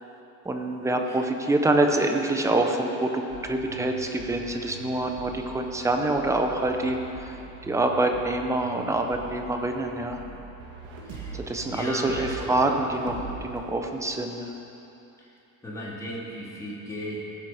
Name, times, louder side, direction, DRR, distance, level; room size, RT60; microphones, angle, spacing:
voice 1, 0.4-7.4 7.6-10.2 11.3-14.5, right 2 dB, 10° right, 4 dB, 0.5 m, -26 dB
sound 1, 3.3-13.6, right 4 dB, 60° right, 1.7 m, -42 dB
voice 2, 11.1-11.4 11.7-12.6 15.6-17.2, equal, 10° left, -6 dB, 2.0 m, -35 dB
16.0 x 7.8 x 5.6 m, 2.9 s
cardioid pair, 170°, 40 cm